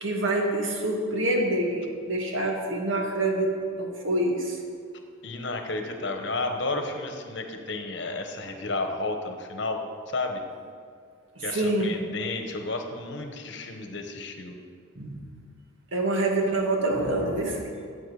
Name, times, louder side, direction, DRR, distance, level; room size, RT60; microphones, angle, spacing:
voice 1, 0.0-4.6 11.5-12.0 15.0-15.2 15.9-17.6, right 1 dB, 65° right, 1 dB, 1.9 m, -26 dB
voice 2, 5.2-9.8 10.1-10.4 11.4-14.5, left 2 dB, 55° left, 5 dB, 1.1 m, -32 dB
14.5 x 8.2 x 4.9 m, 2.2 s
head